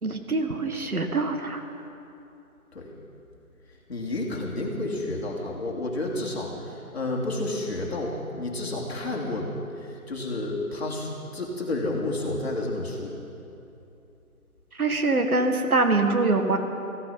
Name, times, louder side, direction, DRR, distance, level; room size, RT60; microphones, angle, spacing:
voice 1, 0.0-1.6 14.8-16.6, right 3 dB, 75° right, 6 dB, 1.9 m, -24 dB
voice 2, 3.9-9.5 10.1-13.1, left 2 dB, 45° left, -2 dB, 2.9 m, -30 dB
15.5 x 14.5 x 5.7 m, 2.8 s
figure-of-eight pair, 165°, 44 cm